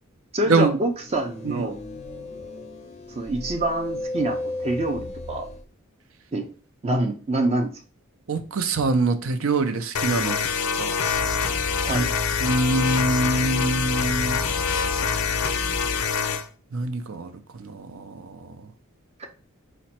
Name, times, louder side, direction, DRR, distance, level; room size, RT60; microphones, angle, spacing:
voice 1, 0.3-1.8 3.2-5.5 6.3-6.5 6.8-7.7 11.8-12.1, right 1 dB, 30° right, 4 dB, 0.5 m, -26 dB
sound 1, 1.0-5.6, left 2 dB, 30° left, 0.5 m, -34 dB
voice 2, 8.3-10.4 10.8-10.9 11.9-12.1 12.4-14.4 16.7-17.3 17.6-18.5, right 3 dB, 75° right, 8 dB, 0.6 m, -24 dB
sound 2, 9.9-16.5, left 6 dB, 85° left, 0.5 m, -25 dB
sound 3, 11.1-16.0, left 1 dB, 50° right, 0.8 m, -33 dB
4.9 x 2.1 x 4.2 m, 0.39 s
head